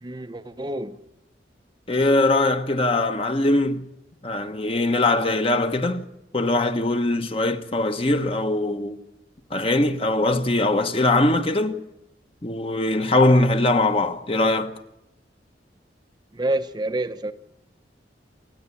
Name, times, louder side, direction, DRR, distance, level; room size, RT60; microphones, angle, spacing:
voice 1, 0.0-1.0 16.3-17.3, right 1 dB, 25° right, 0.7 m, -28 dB
voice 2, 1.9-3.8 4.2-6.0 6.3-9.0 9.5-11.8 12.4-14.7, left 2 dB, 30° left, 1.1 m, -21 dB
27.5 x 9.7 x 9.8 m
head